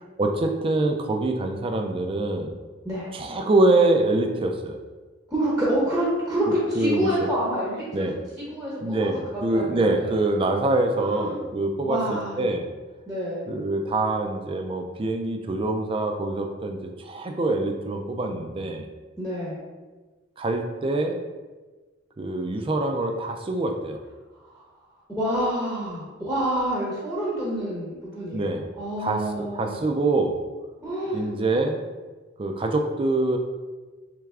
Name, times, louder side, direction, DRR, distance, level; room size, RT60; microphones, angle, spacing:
voice 1, 0.2-2.5 3.1-4.8 6.8-7.1 7.9-8.1 8.8-12.6 13.5-18.8 20.4-21.1 22.2-24.0 28.3-28.6 29.0-30.3 31.1-31.8 32.4-33.4, right 2 dB, 25° right, 4 dB, 0.3 m, -25 dB
voice 2, 5.3-9.1 9.3-10.2 11.0-11.4 11.8-12.6 13.1-13.5 19.2-19.6 24.4-24.6 25.2-30.0 30.8-31.3, right 1 dB, 5° right, -7 dB, 0.8 m, -28 dB
3.3 x 3.3 x 3.5 m, 1.3 s
head